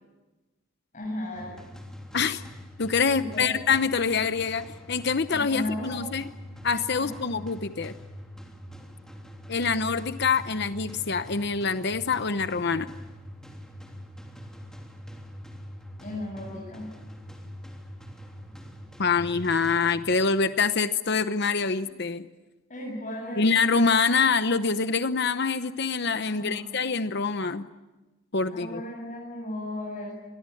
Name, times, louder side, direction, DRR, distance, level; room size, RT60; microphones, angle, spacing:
voice 1, 0.9-1.6 3.2-3.5 5.3-6.1 7.0-7.1 16.0-16.9 22.7-23.5 26.3-26.6 28.5-30.2, left 1 dB, 40° left, -2 dB, 7.8 m, -35 dB
sound 1, 1.3-20.3, equal, 5° left, 3.2 m, -44 dB
voice 2, 2.8-6.2 6.6-7.9 9.5-12.9 19.0-22.3 23.4-27.7 28.3-28.8, left 5 dB, 55° left, 11 dB, 0.9 m, -25 dB
26.5 x 22.0 x 8.6 m, 1.1 s
head